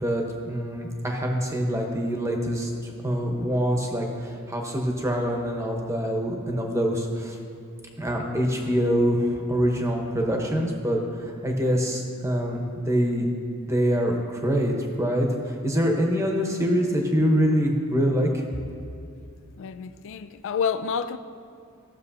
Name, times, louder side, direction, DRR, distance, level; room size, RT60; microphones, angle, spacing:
voice 1, 0.0-7.4 8.0-13.3 13.7-18.4, equal, 15° right, 1.0 m, -25 dB
voice 2, 19.6-21.2, left 6 dB, 60° left, 0.4 m, -29 dB
15.0 x 6.5 x 2.7 m
head